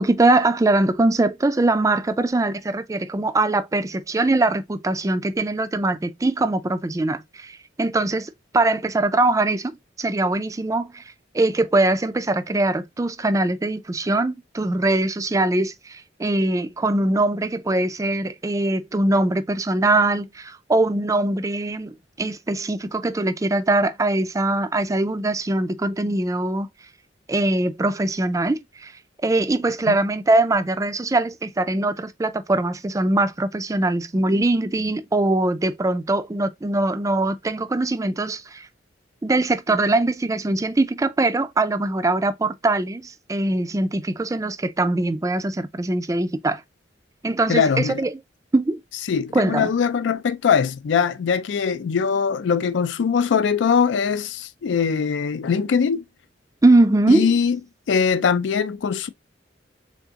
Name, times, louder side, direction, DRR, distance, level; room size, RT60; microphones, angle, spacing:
voice 1, 0.0-9.7 10.0-11.0 11.3-26.7 27.3-28.9 29.2-38.7 39.2-46.6 47.2-48.2 48.5-48.8 49.3-49.7 56.6-57.3, right 2 dB, 20° right, 0.3 m, -22 dB
voice 2, 47.5-48.0 49.1-56.0 57.1-57.6 57.9-59.1, left 6 dB, 70° left, 0.4 m, -21 dB
3.6 x 3.5 x 2.8 m
head